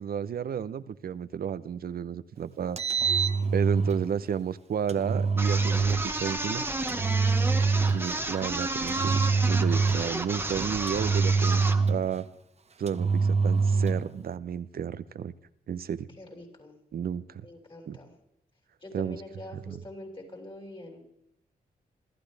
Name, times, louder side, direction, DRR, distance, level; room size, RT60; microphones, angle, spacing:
voice 1, 0.0-2.8 3.5-6.6 7.9-12.3 12.8-15.3 15.7-16.1 16.9-17.5 17.9-18.0 18.9-19.2 19.5-19.8, right 8 dB, 70° right, 15 dB, 0.8 m, -32 dB
Engine, 2.6-4.1 4.9-6.1 6.9-8.2 8.9-10.2 10.9-12.2 12.9-14.1, right 4 dB, 40° right, 1.1 m, -25 dB
sound 1, 5.4-11.9, right 2 dB, 15° right, 1.4 m, -32 dB
voice 2, 16.2-16.8 17.4-18.1 18.8-21.0, left 1 dB, 35° left, -1 dB, 7.0 m, -44 dB
27.5 x 14.0 x 3.4 m, 0.77 s
cardioid pair, 90°, 16 cm